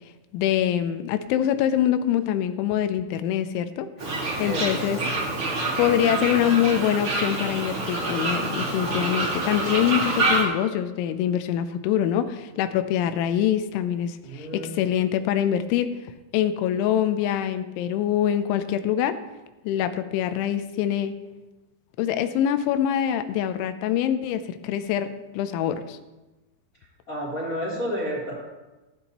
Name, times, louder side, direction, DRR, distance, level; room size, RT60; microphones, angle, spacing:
voice 1, 0.3-5.0 5.8-16.0 16.3-19.2 19.6-21.1 22.0-26.0, left 10 dB, 85° left, 10 dB, 3.1 m, -24 dB
Fowl, 4.0-10.4, right 2 dB, 40° right, 2.1 m, -27 dB
voice 2, 4.4-5.1 14.2-14.9 27.1-28.3, equal, 20° left, -5 dB, 2.9 m, -31 dB
14.5 x 12.5 x 3.0 m, 1.1 s
omnidirectional pair, 5.4 m